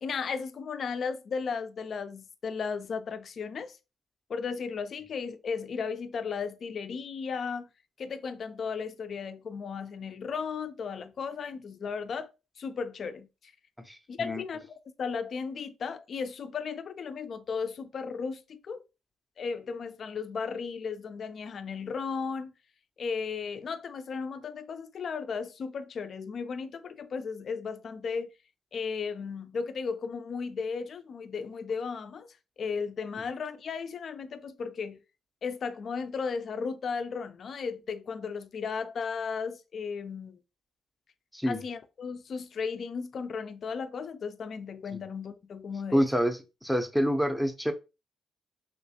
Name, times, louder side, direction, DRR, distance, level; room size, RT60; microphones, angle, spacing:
voice 1, 0.0-3.8 4.3-7.7 8.0-12.3 12.6-13.3 14.1-14.6 15.0-18.8 19.4-22.5 23.0-28.3 28.7-32.3 32.6-35.0 35.4-40.4 41.5-46.0, left 5 dB, 50° left, 0.4 m, -35 dB
voice 2, 13.9-14.4 41.3-41.6 44.9-45.0 45.9-47.7, equal, ahead, 0.6 m, -27 dB
3.1 x 3.0 x 2.8 m
cardioid pair, 90°, 0 cm